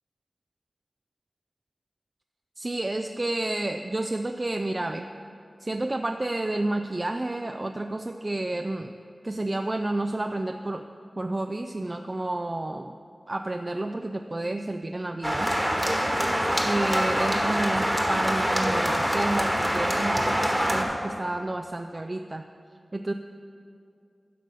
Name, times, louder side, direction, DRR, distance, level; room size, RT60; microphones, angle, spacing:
voice 1, 2.6-5.1 5.6-9.0 9.2-10.8 11.2-12.9 13.3-15.5 16.6-22.4 22.9-23.1, right 2 dB, 30° right, 5 dB, 0.3 m, -30 dB
sound 1, 15.2-20.8, equal, 5° right, 1.3 m, -25 dB
11.5 x 5.0 x 6.8 m, 2.5 s
wide cardioid pair, 90°, 0 cm